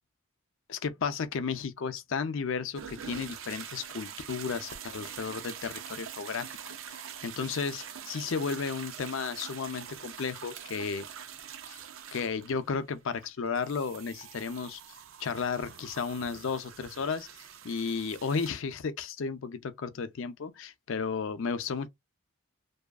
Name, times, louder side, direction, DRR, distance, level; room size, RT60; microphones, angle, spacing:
voice 1, 0.7-6.6 6.8-7.0 7.2-11.1 11.7-11.8 12.1-14.8 15.2-21.9, left 5 dB, 70° left, 0.5 m, -33 dB
sound 1, 2.7-18.5, right 8 dB, 70° right, 0.5 m, -45 dB
2.7 x 2.3 x 2.2 m
head